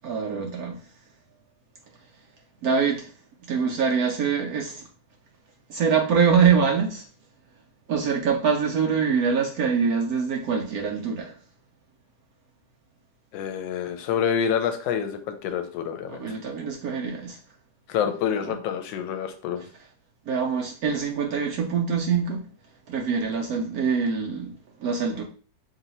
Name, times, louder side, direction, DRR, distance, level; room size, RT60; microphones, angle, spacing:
voice 1, 0.0-0.8 2.6-3.1 3.5-4.8 5.7-7.1 7.9-11.3 16.1-17.4 18.4-18.6 19.6-19.7 20.3-22.5 22.9-24.5 24.8-25.2, right 6 dB, 70° right, 0 dB, 0.9 m, -24 dB
voice 2, 13.3-16.4 17.9-19.6, left 8 dB, 85° left, 8 dB, 1.4 m, -27 dB
3.0 x 2.8 x 4.0 m, 0.41 s
omnidirectional pair, 2.0 m